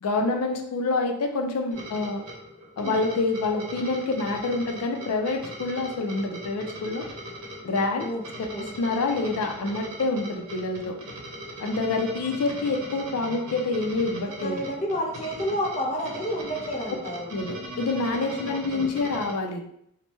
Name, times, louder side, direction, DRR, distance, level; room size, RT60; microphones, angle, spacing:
voice 1, 0.0-2.2 2.8-7.0 7.6-8.1 8.4-11.0 11.6-14.6 17.3-19.6, left 3 dB, 90° left, 3 dB, 0.4 m, -27 dB
sound 1, 1.7-19.3, right 1 dB, 80° right, 0.7 m, -40 dB
voice 2, 14.4-17.3 18.3-18.9, equal, 30° left, -1 dB, 0.5 m, -30 dB
3.1 x 2.1 x 3.1 m, 0.73 s
head